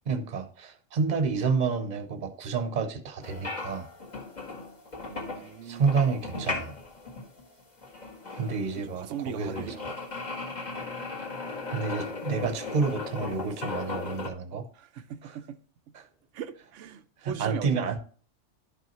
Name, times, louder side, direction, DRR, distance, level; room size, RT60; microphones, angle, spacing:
voice 1, 0.1-3.9 5.7-6.8 8.4-9.7 11.7-14.7 15.2-15.4 15.9-16.1 17.2-18.0, right 5 dB, 40° right, 0.9 m, -29 dB
sound 1, 3.2-14.3, left 3 dB, 35° left, 1.7 m, -37 dB
voice 2, 5.1-5.9 9.0-10.0 14.7-15.6 16.3-17.8, right 9 dB, 90° right, 1.0 m, -39 dB
11.5 x 5.4 x 3.0 m
omnidirectional pair, 1.2 m